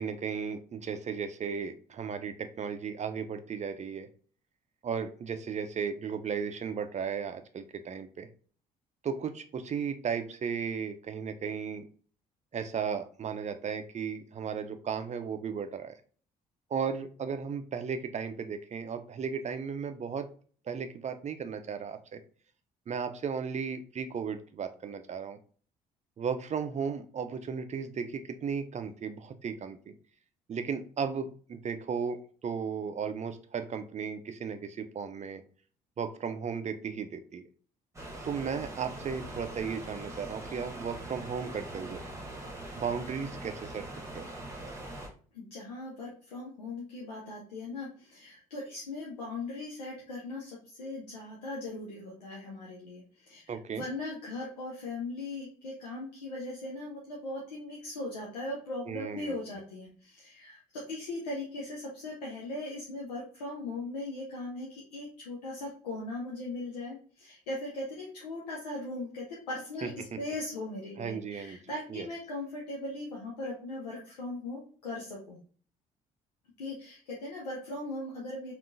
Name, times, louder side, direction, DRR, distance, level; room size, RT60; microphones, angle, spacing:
voice 1, 0.0-4.1 4.8-8.3 9.0-11.8 12.5-16.0 16.7-20.3 20.7-22.2 22.9-25.4 26.2-29.9 30.5-35.4 36.0-37.4 38.2-42.0 42.7-43.8 44.1-44.3 53.5-53.8 58.9-59.4 69.8-69.9 71.0-71.6 71.9-72.1, right 6 dB, 35° right, 8 dB, 0.5 m, -35 dB
sound 1, 37.9-45.1, right 1 dB, 15° right, 1.1 m, -42 dB
voice 2, 45.3-69.9 70.2-75.4 76.6-78.5, left 2 dB, 85° left, -3 dB, 0.6 m, -39 dB
3.6 x 2.5 x 2.5 m, 0.43 s
hypercardioid pair, 50°, 20 cm